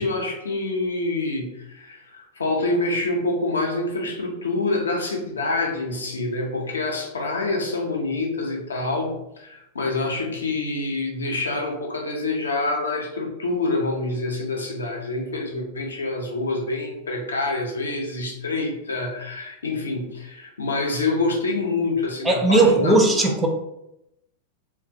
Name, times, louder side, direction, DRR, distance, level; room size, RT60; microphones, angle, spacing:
voice 1, 0.0-23.3, left 2 dB, 70° left, 1 dB, 0.5 m, -26 dB
voice 2, 22.2-23.5, right 2 dB, 15° right, 2 dB, 0.4 m, -17 dB
2.3 x 2.1 x 2.6 m, 0.85 s
figure-of-eight pair, 90°, 0 cm